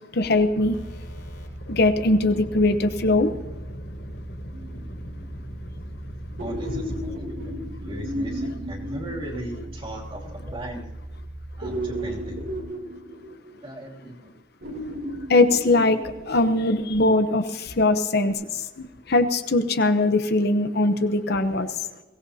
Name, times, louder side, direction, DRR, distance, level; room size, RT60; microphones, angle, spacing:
voice 1, 0.1-0.8 1.7-3.3 15.3-21.7, left 2 dB, 55° left, 8 dB, 0.9 m, -21 dB
sound 1, 0.5-12.6, right 1 dB, 75° left, 5.6 m, -38 dB
sound 2, 4.5-5.3 6.4-9.9 11.6-13.9 14.6-16.6 18.3-18.4, equal, 75° right, 3.4 m, -34 dB
voice 2, 6.4-10.9 11.6-12.5 13.6-14.3, right 1 dB, 25° right, -2 dB, 2.9 m, -38 dB
22.5 x 17.0 x 2.9 m, 1.2 s
head